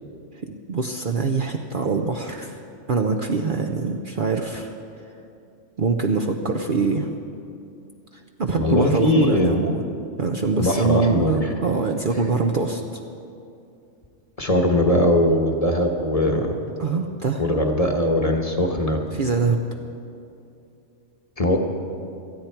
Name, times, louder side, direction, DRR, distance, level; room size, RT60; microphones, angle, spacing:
voice 1, 0.4-2.6 2.9-4.7 5.8-7.1 8.4-9.8 10.2-12.8 16.8-17.4 19.1-19.7, right 4 dB, 50° right, 4 dB, 0.7 m, -24 dB
voice 2, 8.5-9.6 10.6-11.5 14.4-16.6 17.4-19.0 21.4-21.6, left 1 dB, 30° left, 3 dB, 1.1 m, -20 dB
18.5 x 13.5 x 4.5 m, 2.6 s
omnidirectional pair, 1.3 m